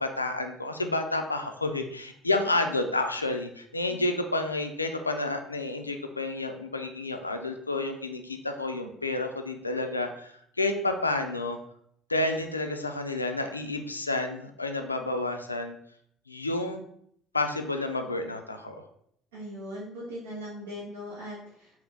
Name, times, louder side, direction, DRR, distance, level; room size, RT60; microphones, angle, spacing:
voice 1, 0.0-11.6 12.1-15.8 16.3-16.8 17.3-18.8, left 2 dB, 85° left, 6 dB, 0.3 m, -30 dB
voice 2, 19.3-21.8, equal, 70° right, -8 dB, 0.9 m, -40 dB
3.8 x 2.5 x 3.4 m, 0.69 s
figure-of-eight pair, 55°, 0 cm